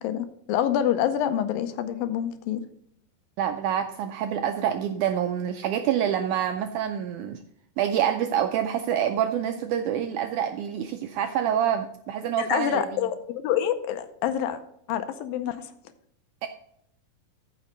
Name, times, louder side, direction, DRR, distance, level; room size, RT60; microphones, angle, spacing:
voice 1, 0.0-2.6 12.4-14.6 14.9-15.6, left 10 dB, 85° left, 10 dB, 2.4 m, -27 dB
voice 2, 3.4-7.4 7.8-12.9 16.4-16.5, right 9 dB, 85° right, 6 dB, 1.7 m, -26 dB
14.0 x 5.5 x 3.9 m, 0.71 s
omnidirectional pair, 4.1 m